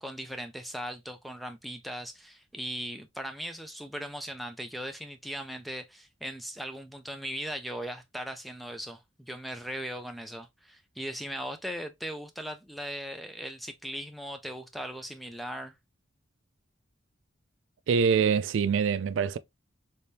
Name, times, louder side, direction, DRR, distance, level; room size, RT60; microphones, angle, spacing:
voice 1, 0.0-15.7, equal, ahead, 0.4 m, -38 dB
voice 2, 17.9-19.4, right 6 dB, 75° right, 0.3 m, -24 dB
3.4 x 3.3 x 2.7 m
head